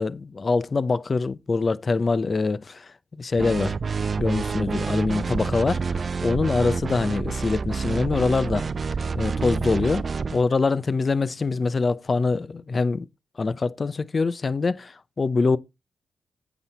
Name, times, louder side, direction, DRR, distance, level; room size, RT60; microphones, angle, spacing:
voice 1, 0.0-3.7 4.2-8.7 9.1-13.1 13.4-15.6, left 4 dB, 40° left, 0.7 m, -24 dB
sound 1, 3.4-10.4, right 5 dB, 50° right, 0.4 m, -28 dB
8.8 x 6.3 x 4.1 m
cardioid pair, 60°, 0 cm